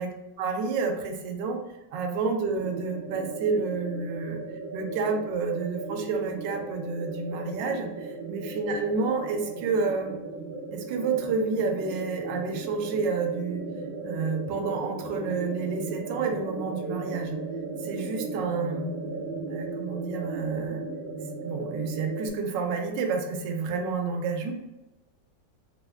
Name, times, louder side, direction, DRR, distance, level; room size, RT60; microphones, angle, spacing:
voice 1, 0.4-1.6 1.9-4.4 4.7-10.2 10.7-13.6 14.0-17.4 17.8-18.9 19.5-20.8 21.4-24.5, right 4 dB, 80° right, 3 dB, 1.2 m, -29 dB
sound 1, 2.6-22.3, right 3 dB, 55° right, 0.5 m, -36 dB
3.6 x 2.1 x 3.4 m, 0.97 s
omnidirectional pair, 2.0 m